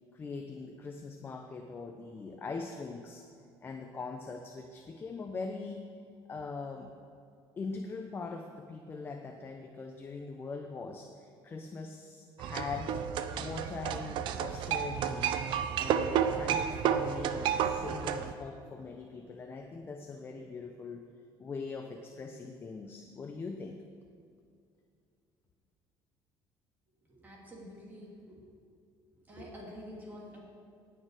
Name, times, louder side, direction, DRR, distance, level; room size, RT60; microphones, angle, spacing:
voice 1, 0.1-3.2 3.6-5.9 6.3-6.9 7.6-13.0 13.3-21.0 21.4-23.8, left 4 dB, 25° left, 4 dB, 0.7 m, -42 dB
sound 1, 12.4-18.3, right 8 dB, 65° right, 0.7 m, -31 dB
voice 2, 27.0-28.4 29.2-30.4, equal, 20° right, -3 dB, 3.1 m, -48 dB
18.0 x 6.6 x 4.9 m, 2.4 s
cardioid pair, 145°, 9 cm